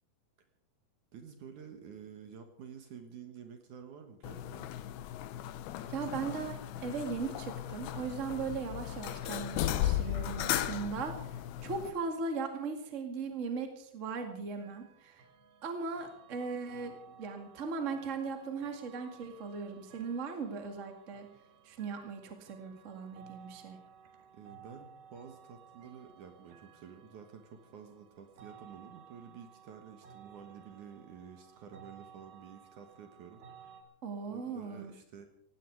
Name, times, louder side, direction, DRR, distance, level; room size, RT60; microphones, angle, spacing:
voice 1, 1.1-4.7 24.3-33.7 34.3-35.3, right 7 dB, 60° right, 6 dB, 2.6 m, -50 dB
sound 1, 4.2-11.9, left 12 dB, 85° left, 2.7 m, -36 dB
voice 2, 5.9-15.2 15.6-21.3 21.6-23.8 34.0-34.9, right 5 dB, 25° right, 5 dB, 1.9 m, -38 dB
sound 2, 14.6-33.8, right 7 dB, 85° right, 3.7 m, -57 dB
17.5 x 17.0 x 4.7 m, 0.74 s
omnidirectional pair, 4.3 m